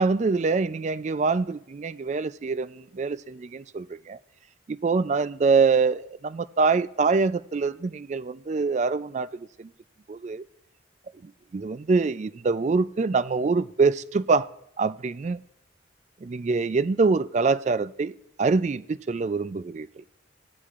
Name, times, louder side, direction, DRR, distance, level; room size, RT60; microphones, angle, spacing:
voice 1, 0.0-4.2 4.7-9.7 10.1-10.4 11.2-14.5 14.8-15.4 16.2-18.1 18.4-20.0, right 4 dB, 35° right, 0.3 m, -25 dB
16.5 x 12.5 x 2.5 m
head